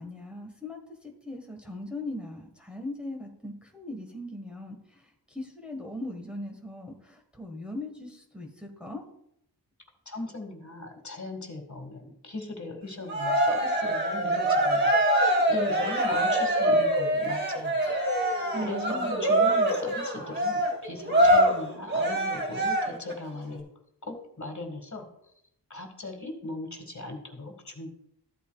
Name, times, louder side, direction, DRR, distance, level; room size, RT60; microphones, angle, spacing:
voice 1, 0.0-9.1 18.5-19.2, left 1 dB, ahead, 1 dB, 1.5 m, -39 dB
voice 2, 10.1-17.8 18.6-23.6 24.0-25.1 25.7-27.9, left 2 dB, 45° left, 3 dB, 1.9 m, -39 dB
Cheering, 13.1-23.1, right 1 dB, 25° right, 2.4 m, -24 dB
14.5 x 8.4 x 2.3 m, 0.76 s
wide cardioid pair, 65°, 41 cm